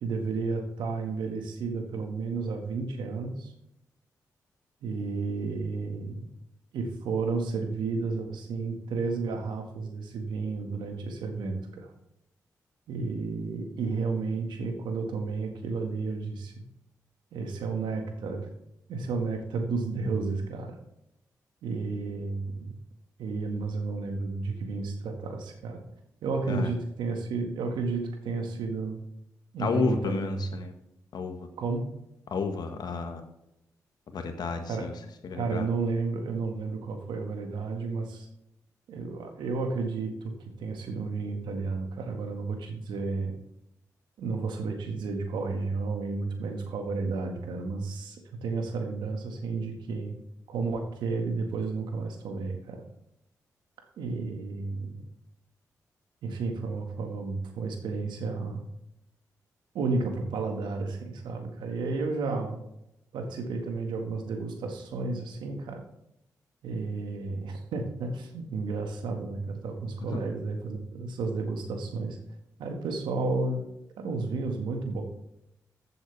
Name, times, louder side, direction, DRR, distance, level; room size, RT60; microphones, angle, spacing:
voice 1, 0.0-3.5 4.8-6.2 6.7-11.9 12.9-16.6 17.3-18.5 18.9-20.8 21.6-22.7 23.2-25.8 26.2-29.0 29.5-30.5 31.6-31.8 34.7-34.9 35.3-38.3 38.9-40.3 40.6-43.3 44.2-50.1 50.5-52.8 54.0-55.0 56.2-58.6 59.7-62.6 63.1-65.8 66.6-72.2 72.6-73.6 74.0-75.0, right 4 dB, 80° right, 4 dB, 1.7 m, -32 dB
voice 2, 29.6-30.7 31.1-31.5 32.3-33.2 34.1-34.9 35.2-35.7 70.1-70.2, left 4 dB, 65° left, 6 dB, 1.5 m, -31 dB
14.5 x 7.8 x 3.4 m, 0.83 s
supercardioid pair, 45°, 8 cm